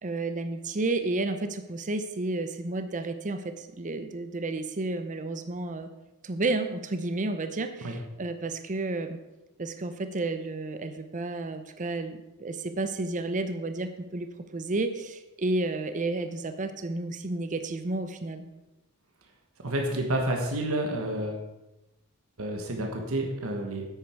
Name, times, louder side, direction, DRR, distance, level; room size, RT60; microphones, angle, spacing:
voice 1, 0.0-5.9 6.2-9.2 9.6-14.3 14.5-18.5, right 2 dB, 35° right, 9 dB, 0.7 m, -31 dB
voice 2, 19.6-21.4 22.4-23.9, right 1 dB, 70° right, 2 dB, 1.5 m, -29 dB
10.0 x 8.4 x 4.6 m, 0.99 s
head